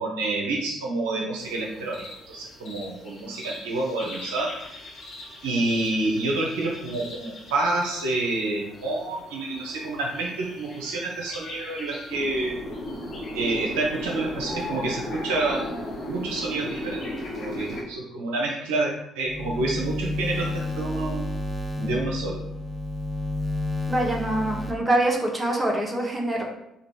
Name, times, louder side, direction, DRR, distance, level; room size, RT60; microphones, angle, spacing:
voice 1, 0.0-4.6 5.4-12.6 13.3-17.0 17.4-21.3 21.8-22.4, right 2 dB, 75° right, -2 dB, 0.8 m, -28 dB
sound 1, 1.4-17.8, left 1 dB, 55° left, 1.7 m, -37 dB
sound 2, 19.3-24.7, left 2 dB, 5° left, 1.0 m, -30 dB
voice 2, 23.9-26.4, right 1 dB, 20° right, 0 dB, 1.3 m, -24 dB
4.0 x 2.9 x 4.6 m, 0.84 s
hypercardioid pair, 50°, 0 cm